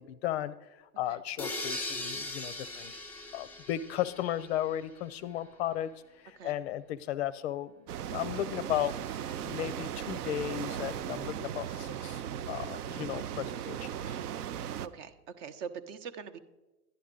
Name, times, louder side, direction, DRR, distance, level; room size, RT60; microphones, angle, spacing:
voice 1, 0.0-2.9 3.3-5.9 6.2-7.7 8.1-14.2, left 12 dB, 45° left, 15 dB, 0.4 m, -35 dB
sound 1, 1.4-5.1, left 2 dB, 5° left, 0.9 m, -40 dB
sound 2, 7.9-14.9, right 10 dB, 70° right, 0.6 m, -37 dB
voice 2, 14.5-16.4, right 7 dB, 50° right, 11 dB, 0.9 m, -43 dB
11.5 x 10.0 x 3.8 m, 1.1 s
hypercardioid pair, 105°, 48 cm